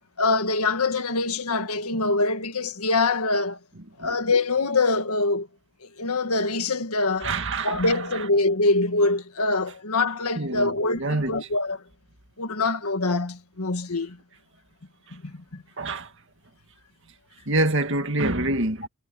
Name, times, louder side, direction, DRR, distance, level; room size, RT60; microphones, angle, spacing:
voice 1, 0.2-3.6 4.0-5.5 5.8-7.4 7.6-11.8 12.4-14.2 15.1-15.6, left 3 dB, 85° left, 1.9 m, -24 dB
voice 2, 7.2-7.9 10.4-11.4 15.8-16.1 17.5-18.9, right 2 dB, 55° right, 2.1 m, -26 dB
head